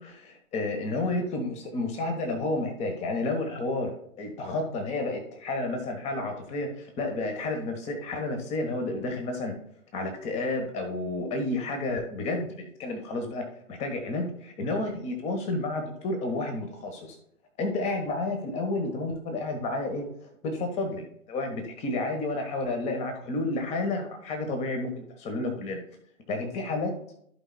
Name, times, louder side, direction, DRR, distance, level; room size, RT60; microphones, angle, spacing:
voice 1, 0.0-3.9 4.2-9.5 9.9-13.4 13.7-17.2 17.6-25.8 26.3-26.9, left 2 dB, 15° left, 4 dB, 1.2 m, -31 dB
14.5 x 4.9 x 2.2 m, 0.70 s
figure-of-eight pair, 120°, 42 cm